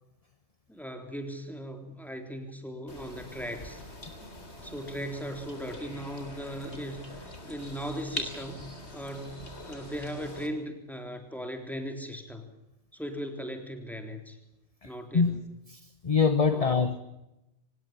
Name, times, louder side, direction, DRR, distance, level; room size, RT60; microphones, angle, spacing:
voice 1, 0.7-3.8 4.6-8.6 8.9-12.5 12.9-14.4 14.8-15.4 16.5-16.9, equal, ahead, 3.7 m, -38 dB
sound 1, 2.9-10.5, left 1 dB, 75° left, 3.9 m, -43 dB
voice 2, 14.8-15.4 15.7-17.0, left 5 dB, 35° left, 1.1 m, -25 dB
24.5 x 19.5 x 6.9 m
omnidirectional pair, 1.1 m